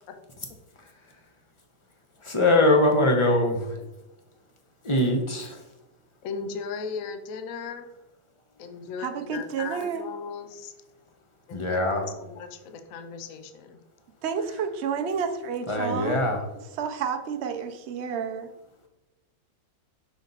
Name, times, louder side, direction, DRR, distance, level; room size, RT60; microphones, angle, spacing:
voice 1, 2.2-3.8 4.8-5.6 11.5-12.0 15.7-16.4, left 1 dB, 25° left, 2 dB, 0.6 m, -22 dB
voice 2, 6.2-7.9 8.6-10.7 11.5-13.8, left 5 dB, 60° left, 7 dB, 0.9 m, -37 dB
voice 3, 9.0-10.0 14.2-16.2 16.8-18.5, right 6 dB, 70° right, 5 dB, 0.6 m, -30 dB
6.3 x 5.3 x 4.0 m, 0.98 s
omnidirectional pair, 2.1 m